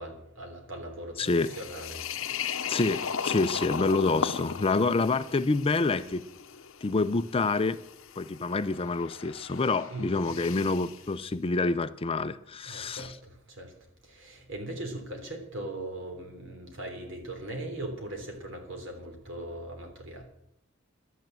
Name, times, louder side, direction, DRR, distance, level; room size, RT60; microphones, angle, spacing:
voice 1, 0.0-2.1 9.9-10.0 12.6-13.7 14.0-20.2, right 1 dB, 65° right, 3.3 m, -39 dB
voice 2, 1.2-1.5 2.7-6.2 6.8-7.8 8.2-13.2, left 3 dB, 25° left, 0.5 m, -27 dB
sound 1, 1.3-11.1, left 6 dB, 70° left, 0.8 m, -37 dB
12.0 x 9.4 x 7.6 m
head